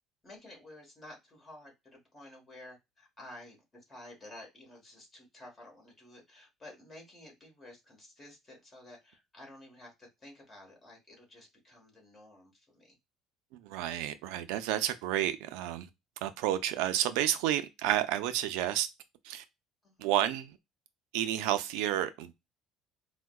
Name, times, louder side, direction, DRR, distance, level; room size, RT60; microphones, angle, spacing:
voice 1, 0.2-13.0 19.8-20.1, left 1 dB, 20° left, 1.3 m, -52 dB
voice 2, 13.5-15.9 16.2-18.9 19.2-19.4 20.0-20.6 21.1-22.3, right 12 dB, 85° right, 0.4 m, -30 dB
4.5 x 2.1 x 2.2 m
cardioid pair, 150°, 0 cm